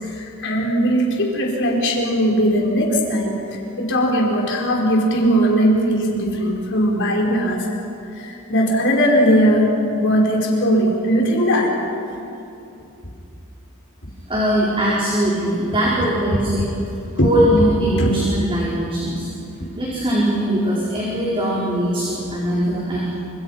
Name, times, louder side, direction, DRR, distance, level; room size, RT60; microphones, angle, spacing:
voice 1, 0.0-7.7 8.1-11.8 17.2-17.3 18.0-18.1, equal, 55° left, -1 dB, 5.3 m, -19 dB
voice 2, 14.3-16.7 17.2-19.3 19.7-23.0, right 1 dB, 25° right, -6 dB, 5.0 m, -20 dB
29.0 x 27.0 x 5.9 m, 2.8 s
head